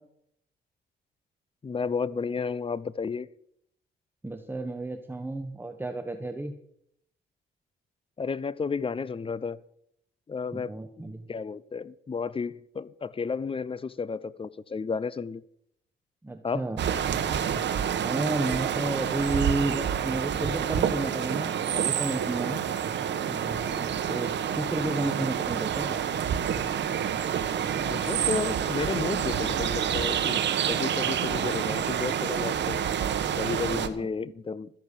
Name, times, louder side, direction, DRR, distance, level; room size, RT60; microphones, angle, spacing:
voice 1, 1.6-3.3 8.2-9.6 10.3-15.4 16.4-16.7 27.8-30.4 30.7-32.9 33.4-34.7, left 5 dB, 25° left, 0.7 m, -32 dB
voice 2, 4.2-6.5 10.5-11.3 16.2-16.8 18.0-22.6 23.2-26.0 34.0-34.1, right 2 dB, 10° right, 1.1 m, -32 dB
sound 1, 16.8-33.9, right 8 dB, 65° right, 1.3 m, -28 dB
13.5 x 10.5 x 6.7 m
cardioid pair, 90°, 20 cm